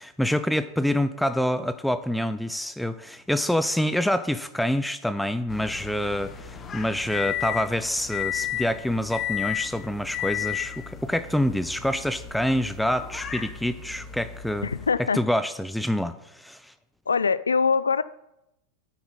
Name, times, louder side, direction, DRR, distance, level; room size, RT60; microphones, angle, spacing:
voice 1, 0.0-14.7 15.1-16.7, left 1 dB, ahead, 12 dB, 0.4 m, -26 dB
sound 1, 5.5-14.9, left 10 dB, 25° left, 1.0 m, -34 dB
voice 2, 14.6-15.2 17.1-18.0, left 5 dB, 75° left, 16 dB, 0.4 m, -23 dB
9.5 x 8.4 x 4.2 m, 0.86 s
figure-of-eight pair, 90°, 0 cm